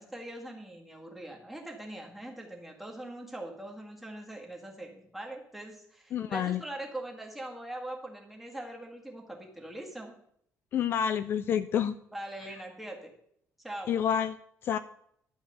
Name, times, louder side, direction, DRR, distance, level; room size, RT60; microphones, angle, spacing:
voice 1, 0.0-10.1 12.1-13.1 13.6-13.9 14.7-14.8, right 1 dB, 5° right, 0 dB, 1.8 m, -42 dB
voice 2, 6.1-6.6 10.7-12.0 13.9-14.4 14.6-14.8, left 8 dB, 45° left, 13 dB, 0.3 m, -28 dB
12.0 x 4.7 x 7.8 m, 0.69 s
cardioid pair, 170°, 5 cm